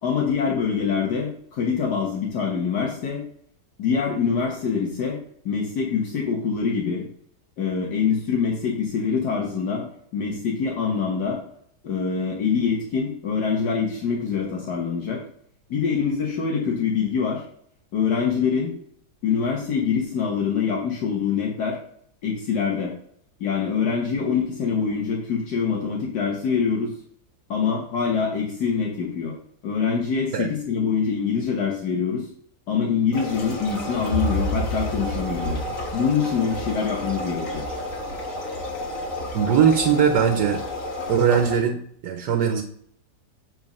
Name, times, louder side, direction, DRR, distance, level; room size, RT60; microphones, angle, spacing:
voice 1, 0.0-3.2 3.8-5.2 5.4-7.0 7.6-9.9 10.1-11.4 11.8-15.2 15.7-17.4 17.9-18.7 19.2-21.8 22.2-22.9 23.4-26.9 27.5-29.3 29.6-32.3 32.7-35.6 35.9-37.6, left 6 dB, 75° left, -1 dB, 1.8 m, -24 dB
sound 1, 33.1-41.5, left 1 dB, 55° left, 1.7 m, -30 dB
voice 2, 39.3-40.6 41.1-42.6, right 8 dB, 80° right, 4 dB, 1.4 m, -20 dB
7.8 x 4.0 x 5.3 m, 0.65 s
omnidirectional pair, 1.8 m